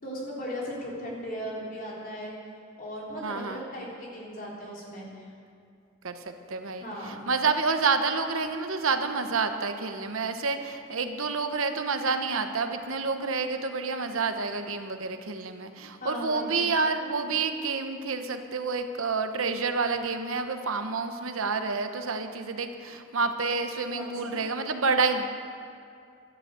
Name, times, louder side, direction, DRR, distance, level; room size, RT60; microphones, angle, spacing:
voice 1, 0.0-2.4 2.8-5.3 6.8-7.3 16.0-16.5 23.9-24.4, equal, 40° left, -4 dB, 3.5 m, -37 dB
voice 2, 3.2-3.6 6.0-25.3, right 4 dB, 75° right, 7 dB, 1.0 m, -29 dB
12.0 x 11.5 x 8.1 m, 2.4 s
head